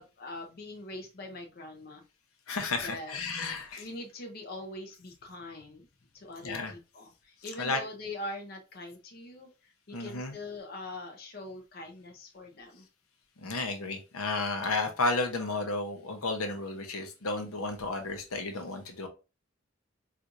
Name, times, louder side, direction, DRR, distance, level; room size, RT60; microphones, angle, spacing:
voice 1, 0.0-2.0 2.8-3.2 3.8-5.9 6.1-9.5 9.9-12.9, left 2 dB, 45° left, 3 dB, 0.6 m, -42 dB
voice 2, 2.5-3.8 6.4-6.7 7.6-7.8 9.9-10.3 13.4-19.1, left 3 dB, 85° left, 6 dB, 0.7 m, -32 dB
4.3 x 2.5 x 2.5 m, 0.30 s
head